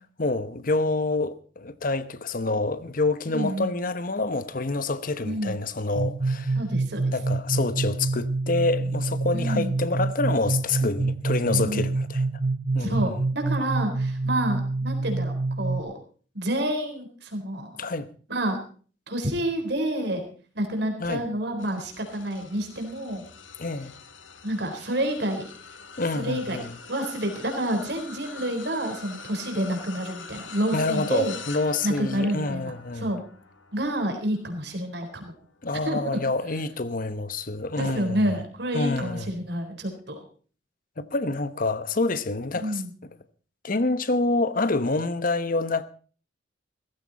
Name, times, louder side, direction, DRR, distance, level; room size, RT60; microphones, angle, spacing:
voice 1, 0.2-6.6 7.1-12.3 12.7-13.1 17.8-18.1 21.0-21.3 23.6-23.9 26.0-26.7 30.7-33.1 35.6-38.3 38.7-39.3 41.0-42.8 43.6-45.8, left 3 dB, 45° left, 1.0 m, -27 dB
voice 2, 3.3-3.7 5.2-5.6 6.6-7.1 9.3-9.7 11.4-11.8 12.8-16.0 16.3-17.9 18.3-18.6 19.1-20.2 20.5-23.2 24.4-25.5 26.2-31.3 31.8-33.2 33.7-35.4 35.8-36.2 37.8-40.2 42.6-42.9, right 1 dB, 60° right, 4.0 m, -29 dB
sound 1, 6.0-15.8, right 3 dB, 45° right, 0.9 m, -27 dB
sound 2, 21.6-37.1 37.6-37.9 39.1-39.2, left 5 dB, 80° left, 1.9 m, -44 dB
16.5 x 15.0 x 4.1 m
head